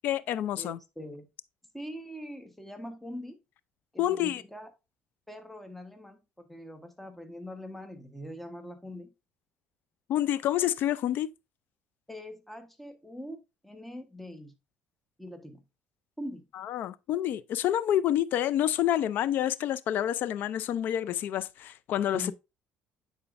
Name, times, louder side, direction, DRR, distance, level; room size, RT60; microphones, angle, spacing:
voice 1, 0.0-0.8 4.0-4.4 10.1-11.3 16.7-22.2, left 11 dB, 65° left, 0.5 m, -28 dB
voice 2, 0.5-1.3 1.7-3.4 3.9-4.7 5.3-9.1 12.1-14.5 15.2-15.6 16.2-16.5 22.1-22.3, equal, 5° left, 1.2 m, -42 dB
9.6 x 4.4 x 2.5 m
supercardioid pair, 85°, 4 cm